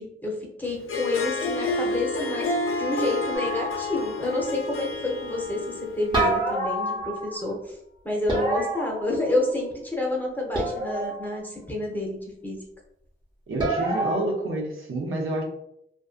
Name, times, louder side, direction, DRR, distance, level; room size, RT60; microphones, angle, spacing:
voice 1, 0.0-7.8 8.0-12.6, left 2 dB, 10° left, -2 dB, 0.7 m, -29 dB
Harp, 0.7-6.2, left 2 dB, 85° left, 0.4 m, -30 dB
sound 1, 3.3-4.3 6.1-7.5 8.3-9.6 10.5-11.4 13.6-14.2, right 1 dB, 20° right, 0.8 m, -28 dB
voice 2, 13.5-15.4, right 2 dB, 80° right, -1 dB, 0.6 m, -28 dB
2.5 x 2.2 x 2.4 m, 0.77 s
wide cardioid pair, 105°, 21 cm